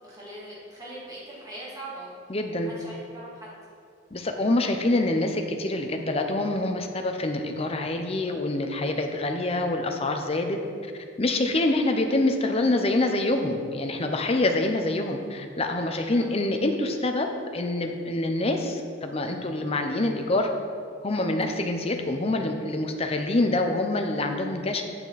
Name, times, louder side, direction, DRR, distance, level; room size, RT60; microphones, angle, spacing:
voice 1, 0.0-2.4 2.6-3.5 16.1-16.3, right 1 dB, 20° right, -7 dB, 2.0 m, -41 dB
voice 2, 2.3-2.7 4.1-10.6 11.2-20.5 21.0-24.8, left 2 dB, 30° left, 5 dB, 0.6 m, -26 dB
8.4 x 5.8 x 4.0 m, 2.3 s
head